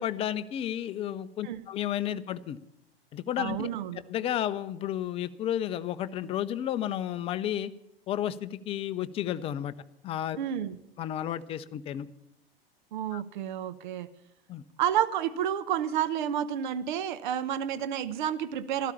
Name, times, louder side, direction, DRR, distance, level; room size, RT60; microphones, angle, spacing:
voice 1, 0.0-2.6 3.1-3.7 4.1-7.7 8.1-9.7 10.0-10.4 11.0-12.1 13.1-13.2 14.5-14.6, left 11 dB, 20° left, 13 dB, 0.5 m, -32 dB
voice 2, 3.4-4.0 10.4-10.8 12.9-14.1 14.8-18.9, right 10 dB, 50° right, 15 dB, 0.9 m, -30 dB
13.5 x 13.0 x 6.9 m, 0.85 s
figure-of-eight pair, 95°, 31 cm